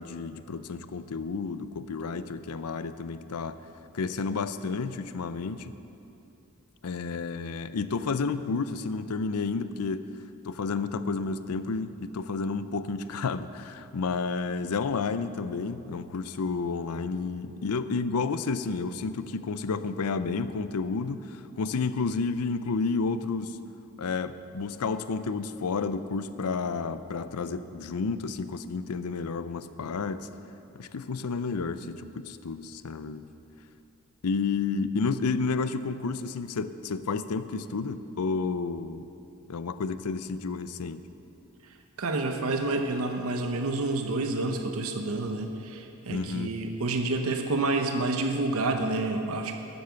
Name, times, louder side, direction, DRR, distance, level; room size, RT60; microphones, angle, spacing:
voice 1, 0.0-3.6 3.9-5.7 6.8-10.0 10.4-23.6 24.0-30.3 30.7-33.3 34.2-39.1 39.5-41.0 46.1-46.5, left 4 dB, 90° left, 13 dB, 0.5 m, -31 dB
voice 2, 42.0-49.5, right 2 dB, 75° right, 5 dB, 0.8 m, -29 dB
12.5 x 8.4 x 7.0 m, 2.9 s
head